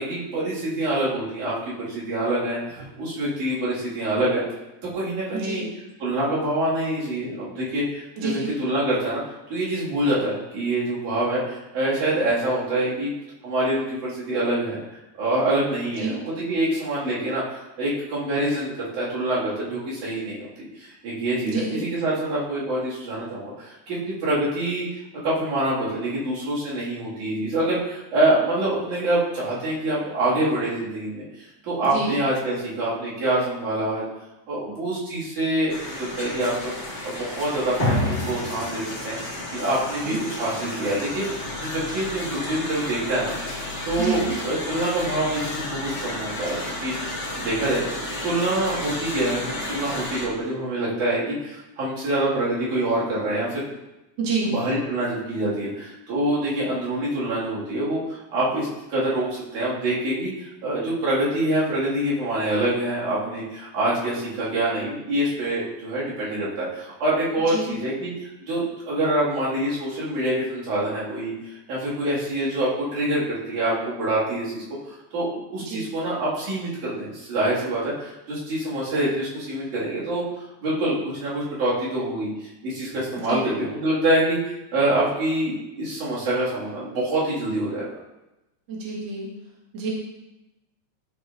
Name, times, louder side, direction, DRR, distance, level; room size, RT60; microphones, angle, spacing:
voice 1, 0.0-4.4 4.9-5.6 6.0-9.2 9.5-13.1 13.4-14.8 15.2-20.5 20.8-24.9 25.2-31.2 31.6-34.1 34.5-36.5 37.0-38.0 38.2-43.3 43.8-47.8 48.2-53.7 54.4-71.3 71.7-74.6 75.1-80.2 80.6-84.4 84.7-87.9, right 1 dB, 75° right, -8 dB, 3.5 m, -25 dB
voice 2, 8.2-8.5 16.0-16.1 21.4-21.8 31.9-32.1 40.1-40.2 44.0-44.3 54.2-54.6 67.5-67.7 75.7-75.8 83.3-83.4 88.7-89.3 89.7-89.9, right 4 dB, 45° right, -4 dB, 1.9 m, -28 dB
sound 1, 35.7-50.3, left 1 dB, 35° left, 1.2 m, -31 dB
12.5 x 5.0 x 2.5 m, 0.96 s
omnidirectional pair, 3.5 m